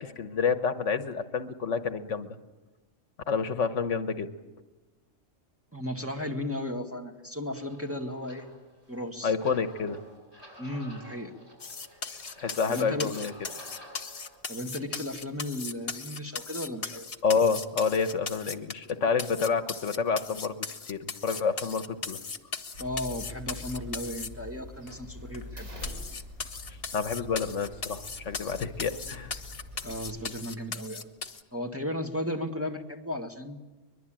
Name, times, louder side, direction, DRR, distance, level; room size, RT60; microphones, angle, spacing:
voice 1, 0.0-2.3 3.3-4.3 9.2-10.0 12.4-13.3 17.2-20.5 20.9-22.2 26.7-29.3, left 5 dB, 70° left, 10 dB, 1.4 m, -28 dB
voice 2, 5.7-8.5 8.9-9.3 10.6-11.3 12.7-13.1 14.5-17.1 22.8-25.7 29.8-31.1 31.5-33.6, left 1 dB, 10° right, 1 dB, 1.9 m, -35 dB
sound 1, 7.5-14.4, right 1 dB, 45° right, 7.2 m, -51 dB
sound 2, 11.6-18.9 19.2-24.3 24.9-25.0 25.3-25.4 25.8-31.4, left 5 dB, 50° left, 1.4 m, -38 dB
sound 3, 22.7-30.2, left 2 dB, 85° right, 6.0 m, -44 dB
23.0 x 22.0 x 9.0 m, 1.2 s
omnidirectional pair, 1.3 m